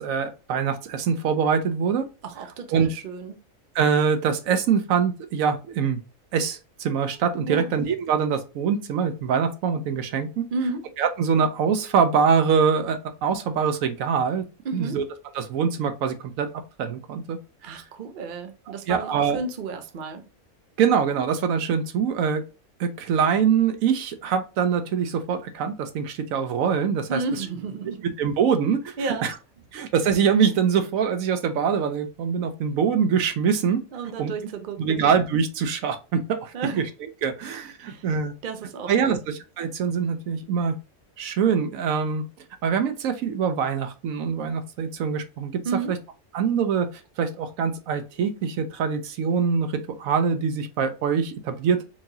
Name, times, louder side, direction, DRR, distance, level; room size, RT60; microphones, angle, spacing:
voice 1, 0.0-2.0 2.7-2.9 3.7-6.0 6.3-10.4 11.0-14.4 14.7-15.0 15.3-16.5 16.8-17.4 18.9-19.4 20.8-22.4 22.8-27.2 28.2-28.9 29.7-33.8 34.2-34.3 34.8-36.8 37.2-38.3 38.9-40.8 41.2-42.2 42.6-45.6 45.9-46.0 46.3-46.9 47.2-51.9, right 6 dB, 70° right, 1.0 m, -24 dB
voice 2, 2.2-3.4 7.5-7.7 10.5-10.9 14.6-15.0 17.6-20.2 27.1-28.1 29.0-29.3 33.9-35.1 36.5-36.9 37.8-38.1 38.4-39.2 45.6-45.9, right 4 dB, 55° right, 0.6 m, -32 dB
4.6 x 2.7 x 2.6 m
omnidirectional pair, 1.5 m